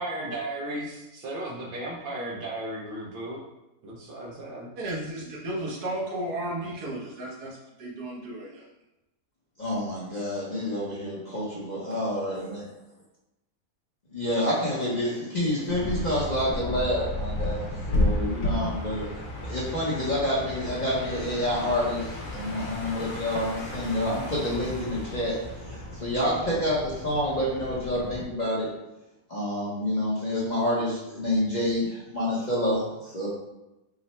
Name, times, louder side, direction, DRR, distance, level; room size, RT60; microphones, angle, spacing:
voice 1, 0.0-3.4 3.8-4.7, right 1 dB, 65° right, -4 dB, 0.5 m, -35 dB
voice 2, 4.8-8.6, right 1 dB, 80° right, -3 dB, 1.4 m, -34 dB
voice 3, 9.6-12.6 14.1-19.1 19.4-25.4 25.7-28.7 29.3-33.3, left 1 dB, 40° left, -7 dB, 0.7 m, -28 dB
sound 1, 15.7-28.2, left 1 dB, 75° left, 1.2 m, -33 dB
3.7 x 2.1 x 4.1 m, 0.96 s
omnidirectional pair, 1.6 m